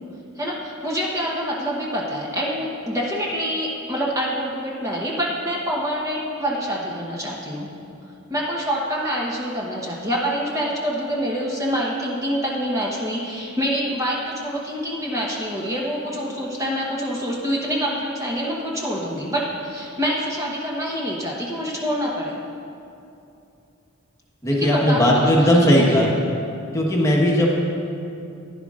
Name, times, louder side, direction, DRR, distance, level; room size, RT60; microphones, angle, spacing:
voice 1, 0.4-7.7 8.3-22.4 24.6-26.1, equal, 15° right, -4 dB, 1.0 m, -26 dB
voice 2, 24.4-26.1 26.7-27.5, equal, 15° left, -3 dB, 1.2 m, -17 dB
15.5 x 10.5 x 2.4 m, 2.7 s
head